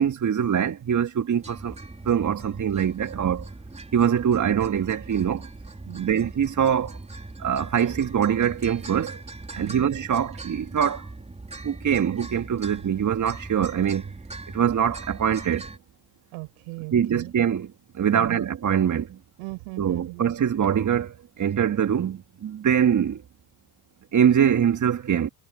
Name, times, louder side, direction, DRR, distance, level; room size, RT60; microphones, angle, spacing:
voice 1, 0.0-1.8 2.1-3.5 3.9-5.5 5.9-7.0 7.4-9.2 9.6-11.0 11.6-14.1 14.5-15.7 16.9-19.2 19.8-23.2 24.1-25.3, right 8 dB, 40° right, 2.2 m, -23 dB
sound 1, 1.4-15.8, right 2 dB, 15° right, 3.9 m, -40 dB
voice 2, 5.9-6.2 9.6-9.8 16.3-17.3 18.1-18.5 19.4-20.2, right 28 dB, 75° right, 5.8 m, -38 dB
hypercardioid pair, 70°, 48 cm